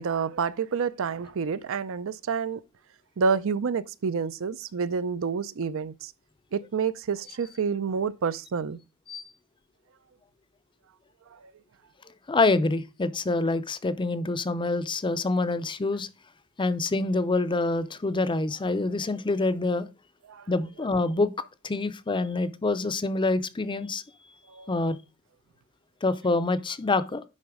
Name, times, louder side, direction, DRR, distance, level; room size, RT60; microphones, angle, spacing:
voice 1, 0.0-2.6 3.2-6.1 6.5-8.8 20.3-20.4 24.5-24.7, right 5 dB, 65° right, 0.5 m, -28 dB
voice 2, 12.3-16.1 16.6-19.9 20.5-21.3 21.6-24.0 24.7-25.0 26.0-27.2, left 3 dB, 20° left, 0.5 m, -26 dB
10.5 x 4.1 x 4.9 m
head